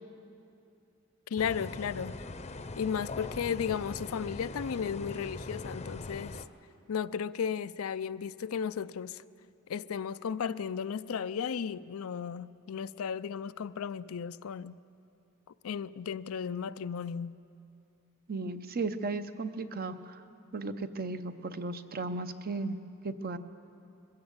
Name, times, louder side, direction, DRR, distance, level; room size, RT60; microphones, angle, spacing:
voice 1, 1.3-2.2 2.8-6.4 6.9-9.2 9.7-14.8 15.6-17.4, left 7 dB, 85° left, 0.4 m, -34 dB
sound 1, 1.4-6.4, left 2 dB, 30° left, 0.7 m, -41 dB
voice 2, 18.3-20.2 20.5-22.8 23.0-23.4, right 3 dB, 45° right, 0.8 m, -35 dB
21.0 x 15.5 x 8.0 m
head